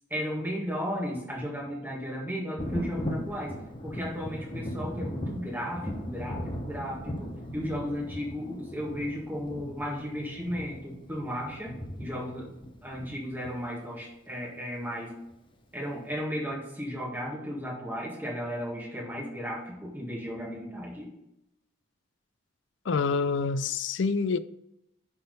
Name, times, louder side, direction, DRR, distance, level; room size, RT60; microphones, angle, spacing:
voice 1, 0.1-3.5 3.8-12.5 12.8-15.1 15.7-21.1, equal, 10° right, 2.0 m, -35 dB
Thunder, 2.6-14.0 15.3-15.4 15.9-16.0, equal, 25° left, 0.9 m, -38 dB
voice 2, 22.9-24.4, left 4 dB, 65° left, 0.4 m, -27 dB
10.5 x 3.8 x 5.5 m
head